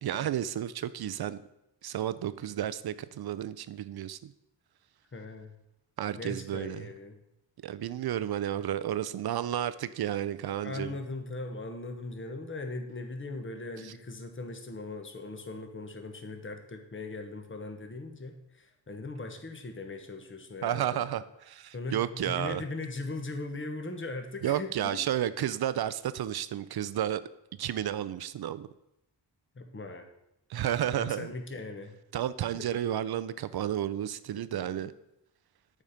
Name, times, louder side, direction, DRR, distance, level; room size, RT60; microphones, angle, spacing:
voice 1, 0.0-1.4 1.8-4.3 6.0-6.8 7.6-11.0 20.6-22.6 24.4-27.2 27.6-28.7 30.5-31.3 32.1-34.9, right 11 dB, 55° right, 15 dB, 0.5 m, -32 dB
voice 2, 5.1-5.5 6.2-7.2 10.6-21.0 21.7-25.0 29.5-30.1 31.0-32.0 32.6-32.7 34.5-34.9, left 2 dB, 25° left, 6 dB, 1.0 m, -39 dB
7.2 x 4.2 x 5.0 m, 0.85 s
cardioid pair, 50°, 46 cm